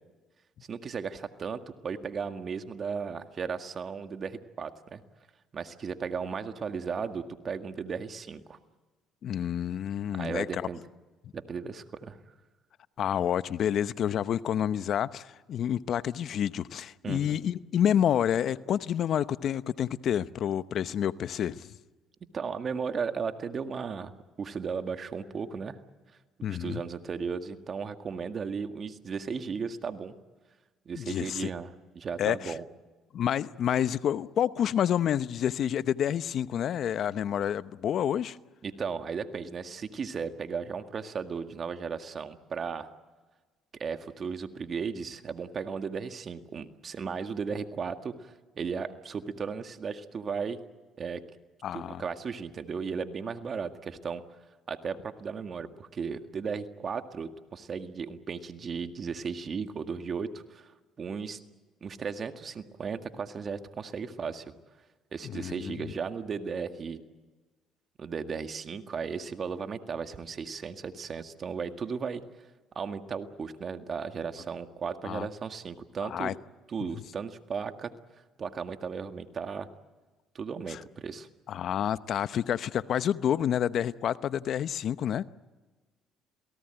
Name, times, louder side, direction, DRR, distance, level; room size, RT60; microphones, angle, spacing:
voice 1, 0.7-5.0 5.5-8.6 10.1-10.8 11.3-12.2 17.0-17.4 22.3-24.1 24.4-25.8 26.5-30.2 30.9-32.6 38.6-42.9 43.8-50.6 51.0-51.2 51.7-54.2 54.7-61.4 61.8-64.5 65.1-67.0 68.0-72.2 72.8-76.3 76.7-77.9 78.4-79.7 80.3-81.3, right 6 dB, 45° right, 1.9 m, -35 dB
voice 2, 9.2-10.6 13.0-21.7 26.4-26.8 30.9-31.5 32.2-32.5 33.1-38.4 51.6-52.0 65.3-65.8 75.0-75.3 76.0-76.3 76.8-76.9 80.7-80.8 81.5-85.2, left 9 dB, 60° left, 0.8 m, -29 dB
28.0 x 18.0 x 9.1 m
supercardioid pair, 80°, 0 cm